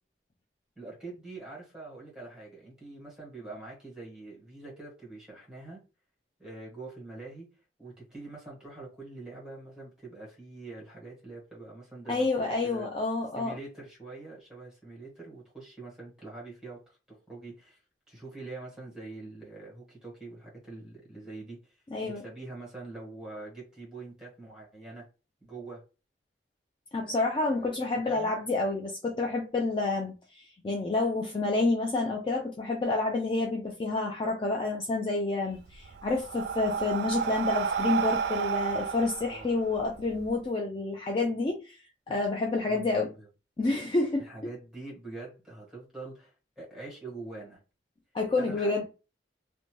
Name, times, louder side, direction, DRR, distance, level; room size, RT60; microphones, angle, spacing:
voice 1, 0.7-5.8 6.4-7.5 7.8-12.9 13.3-17.8 18.1-25.0 25.4-25.8 27.1-27.2 27.5-27.7 28.1-28.3 39.3-39.6 42.6-43.3 44.2-47.6 48.4-48.9, right 3 dB, 5° right, 1.3 m, -44 dB
voice 2, 12.1-13.5 21.9-22.2 26.9-41.8 42.1-43.1 43.6-44.2 48.1-48.8, left 3 dB, 30° left, 0.3 m, -29 dB
Breathing, 35.5-40.3, right 7 dB, 70° right, 0.3 m, -31 dB
2.6 x 2.2 x 3.0 m
head